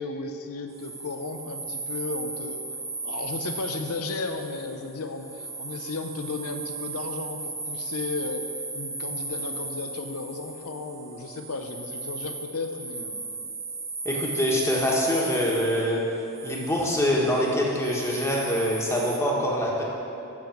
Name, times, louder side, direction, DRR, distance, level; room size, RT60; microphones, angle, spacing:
voice 1, 0.0-2.6 3.0-13.3, left 3 dB, 80° left, 6 dB, 0.7 m, -34 dB
sound 1, 0.7-19.2, right 3 dB, 15° right, 0.8 m, -36 dB
voice 2, 14.0-16.0 16.4-19.8, equal, 15° left, -3 dB, 1.5 m, -25 dB
7.3 x 7.2 x 7.7 m, 2.9 s
head